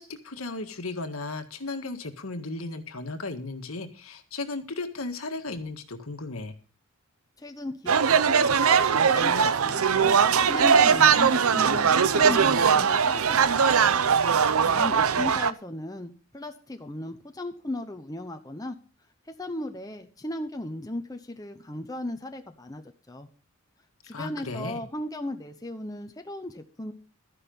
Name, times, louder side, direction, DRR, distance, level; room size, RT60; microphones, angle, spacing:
voice 1, 0.0-6.6 24.0-24.8, left 3 dB, 70° left, 7 dB, 1.7 m, -35 dB
voice 2, 7.4-13.9 14.6-18.8 19.4-23.3 24.0-26.9, left 1 dB, 15° left, 5 dB, 0.9 m, -37 dB
sound 1, 7.9-15.5, right 6 dB, 75° right, 0.7 m, -20 dB
13.5 x 10.5 x 5.4 m, 0.40 s
head